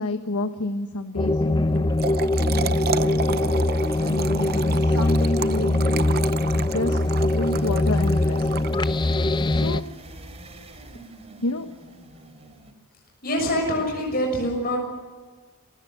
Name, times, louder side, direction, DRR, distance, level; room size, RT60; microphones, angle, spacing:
voice 1, 0.0-1.9 2.5-3.6 4.0-6.1 6.5-8.5 9.5-9.8 11.4-11.7, left 2 dB, 75° left, 8 dB, 1.2 m, -30 dB
sound 1, 1.2-9.8, left 2 dB, 20° left, 0.6 m, -22 dB
sound 2, 1.8-12.7, right 1 dB, 30° right, 3.2 m, -46 dB
Trickle dribble / Fill (with liquid), 1.8-9.2, right 7 dB, 45° right, 0.7 m, -33 dB
voice 2, 13.2-14.8, equal, 45° left, 0 dB, 6.6 m, -24 dB
27.5 x 16.5 x 7.5 m, 1.4 s
head